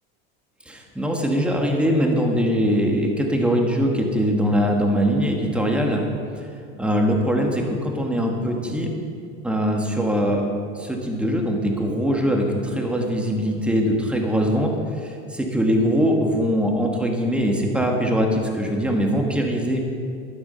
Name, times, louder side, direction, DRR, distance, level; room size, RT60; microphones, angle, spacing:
voice 1, 0.7-6.0 6.4-8.9 9.4-10.5 10.7-19.8, equal, 5° right, 1 dB, 1.7 m, -22 dB
12.5 x 11.5 x 5.7 m, 2.3 s
supercardioid pair, 140°, 30 cm